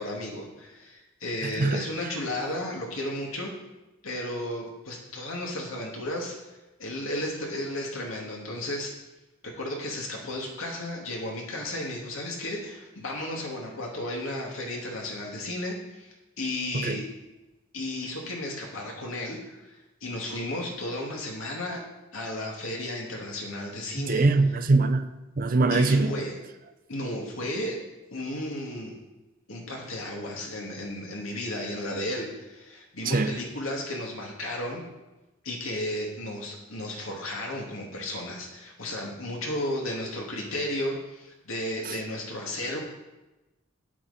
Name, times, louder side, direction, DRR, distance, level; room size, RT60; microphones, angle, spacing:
voice 1, 0.0-3.5 4.0-6.4 6.8-8.9 9.4-16.1 16.4-17.1 17.7-21.8 22.1-24.2 25.7-26.4 26.9-27.8 28.1-29.0 29.5-34.8 35.4-42.8, left 1 dB, 85° left, -1 dB, 2.3 m, -34 dB
voice 2, 24.0-25.0 25.4-26.1 33.1-33.3 41.9-42.0, right 3 dB, 45° right, 9 dB, 0.5 m, -22 dB
9.1 x 8.8 x 4.2 m, 1.1 s
head